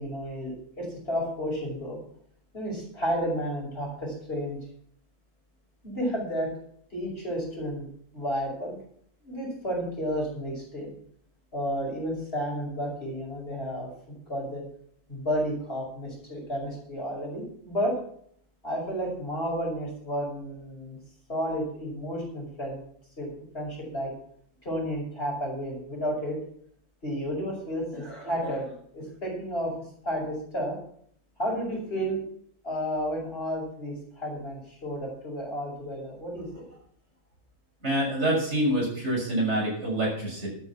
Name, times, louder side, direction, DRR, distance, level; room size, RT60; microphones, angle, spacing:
voice 1, 0.0-2.0 2.5-4.6 5.8-6.5 6.9-7.9 8.1-8.8 9.2-10.9 11.5-13.9 14.3-14.6 15.1-17.9 18.6-21.0 21.3-22.8 23.2-23.3 23.5-24.1 24.6-26.4 27.0-29.7 30.0-30.7 31.4-32.2 32.6-36.5, equal, 45° left, -1 dB, 6.0 m, -31 dB
voice 2, 37.8-40.5, right 1 dB, 55° right, -2 dB, 6.8 m, -26 dB
12.5 x 9.7 x 6.0 m, 0.63 s
omnidirectional pair, 1.4 m